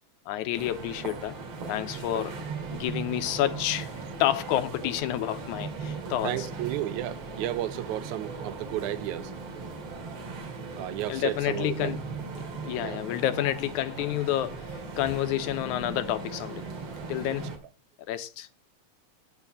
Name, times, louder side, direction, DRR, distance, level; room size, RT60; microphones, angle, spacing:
voice 1, 0.3-1.4 1.7-2.4 2.7-3.9 4.2-6.5 11.1-12.0 12.6-16.7 17.1-17.5 18.1-18.5, left 13 dB, 85° left, 2.2 m, -29 dB
sound 1, 0.5-17.6, right 4 dB, 60° right, 2.9 m, -38 dB
voice 2, 6.2-9.3 10.8-12.0 12.8-13.0, right 13 dB, 85° right, 2.1 m, -33 dB
8.3 x 6.9 x 6.8 m
omnidirectional pair, 3.4 m